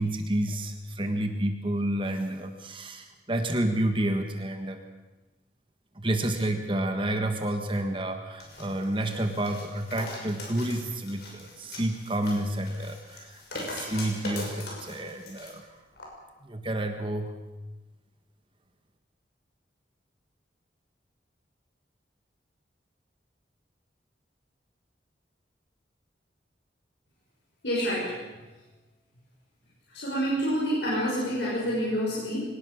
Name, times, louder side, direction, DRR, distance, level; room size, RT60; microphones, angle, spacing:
voice 1, 0.0-4.8 5.9-15.7 16.4-17.3, right 1 dB, 30° right, 5 dB, 1.6 m, -30 dB
sound 1, 8.4-15.5 16.0-16.1, left 1 dB, 60° left, 6.2 m, -41 dB
voice 2, 27.6-28.1 29.9-32.4, equal, 75° left, -6 dB, 6.6 m, -27 dB
24.0 x 19.0 x 6.5 m, 1.2 s
head